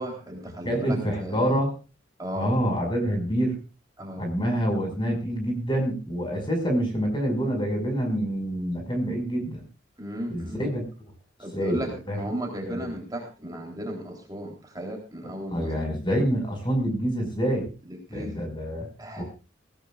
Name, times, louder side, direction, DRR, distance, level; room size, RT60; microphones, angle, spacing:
voice 1, 0.0-1.6 2.2-2.5 4.0-4.3 10.0-10.6 11.4-15.7 17.8-18.4 19.0-19.2, equal, 20° right, 0 dB, 3.6 m, -35 dB
voice 2, 0.6-1.7 2.4-3.6 4.2-9.6 10.3-10.8 11.5-11.8 12.1-12.2 12.7-12.8 15.5-17.7 18.1-18.9 19.2-19.3, equal, 25° left, 3 dB, 5.8 m, -26 dB
22.0 x 16.5 x 2.5 m, 0.32 s
head